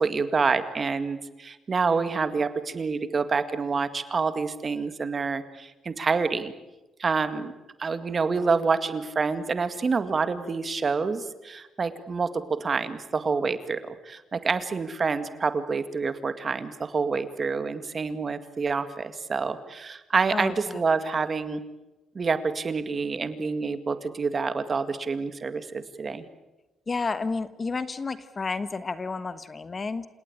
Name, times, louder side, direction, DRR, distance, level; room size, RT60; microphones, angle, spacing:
voice 1, 0.0-6.5 7.0-7.5 7.8-21.6 22.1-26.3, right 4 dB, 40° right, 11 dB, 2.0 m, -27 dB
voice 2, 20.3-20.8 26.9-30.1, left 4 dB, 30° left, 13 dB, 1.3 m, -31 dB
28.5 x 18.0 x 8.8 m, 1.0 s
cardioid pair, 90°, 0 cm